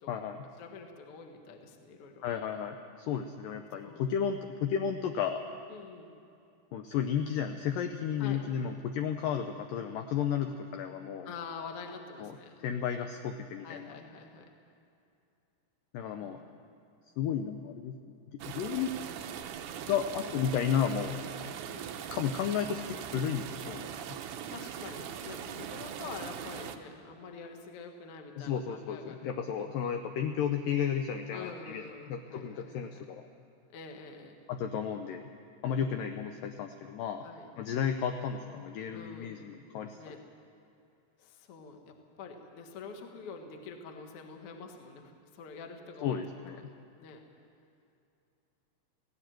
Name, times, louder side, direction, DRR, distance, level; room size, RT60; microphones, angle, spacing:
voice 1, 0.1-0.4 2.2-5.4 6.7-11.3 12.2-12.3 12.6-13.9 15.9-16.4 17.2-18.2 18.5-18.9 19.9-21.1 22.1-23.9 28.3-31.8 32.1-33.2 34.5-35.2 35.6-37.3 37.6-40.0 46.0-46.6, left 8 dB, 80° left, 6 dB, 2.0 m, -33 dB
voice 2, 0.6-2.2 3.8-4.0 5.7-6.1 8.2-8.4 11.2-12.8 13.6-14.5 16.2-16.4 18.7-18.9 21.7-21.9 24.5-29.3 31.3-33.0 33.7-34.4 35.7-36.0 37.2-37.5 38.9-39.3 39.9-40.3 41.2-46.2 46.5-46.7 47.0-47.2, left 4 dB, 50° left, 4 dB, 1.8 m, -46 dB
sound 1, 18.4-26.8, right 8 dB, 85° right, 1.7 m, -41 dB
17.5 x 17.0 x 9.2 m, 2.6 s
omnidirectional pair, 4.9 m